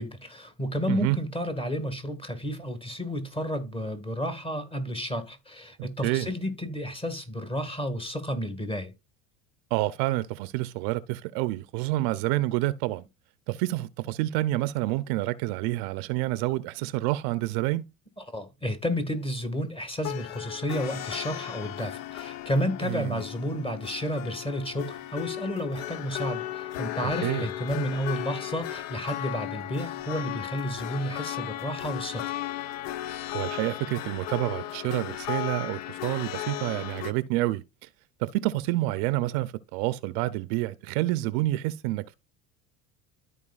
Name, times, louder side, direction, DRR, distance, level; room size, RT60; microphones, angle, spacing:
voice 1, 0.0-8.9 18.2-32.3, equal, 15° left, 2.0 m, -31 dB
voice 2, 5.8-6.3 9.7-13.0 13.5-17.9 22.8-23.2 27.2-27.5 33.3-37.9 38.2-42.1, right 17 dB, 70° right, 0.6 m, -28 dB
sound 1, 20.0-37.1, left 14 dB, 55° left, 0.6 m, -36 dB
13.5 x 4.6 x 2.4 m
supercardioid pair, 95°, 31 cm